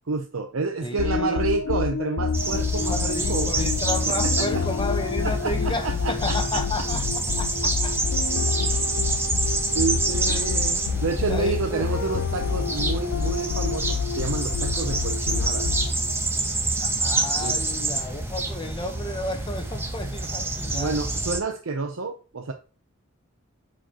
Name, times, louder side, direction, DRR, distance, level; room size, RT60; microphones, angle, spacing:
voice 1, 0.1-3.6 4.1-4.5 5.2-6.6 8.6-8.9 9.7-15.7 17.4-17.6 20.7-22.5, right 4 dB, 75° right, 0.7 m, -29 dB
voice 2, 0.8-1.8 2.8-7.0 7.4-8.1 8.6-8.7 10.3-10.5 11.3-11.8 17.0-21.0, left 2 dB, 25° left, 1.1 m, -32 dB
sound 1, 1.0-16.1, left 6 dB, 70° left, 0.4 m, -28 dB
sound 2, 2.3-21.4, right 2 dB, 10° right, 1.0 m, -27 dB
9.0 x 4.9 x 3.0 m
head